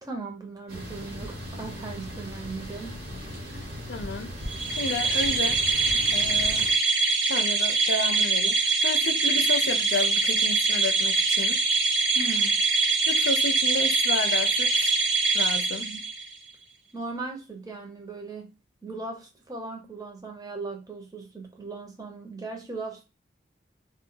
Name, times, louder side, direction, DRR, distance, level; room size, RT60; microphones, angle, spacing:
voice 1, 0.0-2.9 12.1-12.6 15.8-16.0 16.9-18.5 18.8-23.0, right 3 dB, 20° right, 0.7 m, -38 dB
sound 1, 0.7-6.7, equal, 60° right, 1.1 m, -38 dB
voice 2, 3.9-4.3 4.8-5.6 6.1-6.7 7.3-11.6 13.1-14.9 15.3-15.9, left 3 dB, 80° left, 0.5 m, -31 dB
sound 2, 4.5-16.3, right 3 dB, 90° right, 0.6 m, -24 dB
2.4 x 2.2 x 3.8 m
head